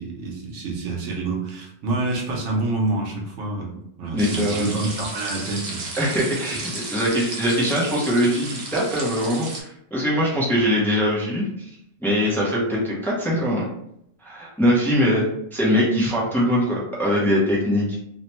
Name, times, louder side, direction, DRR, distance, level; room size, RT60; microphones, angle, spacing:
voice 1, 0.0-5.9 6.5-6.6, right 2 dB, 90° right, -1 dB, 1.1 m, -27 dB
voice 2, 4.1-4.7 6.0-11.7 12.0-13.7 14.2-18.0, equal, ahead, -5 dB, 0.6 m, -22 dB
sound 1, 4.2-9.6, right 2 dB, 45° right, 0.7 m, -34 dB
3.1 x 2.1 x 3.0 m, 0.75 s
omnidirectional pair, 1.2 m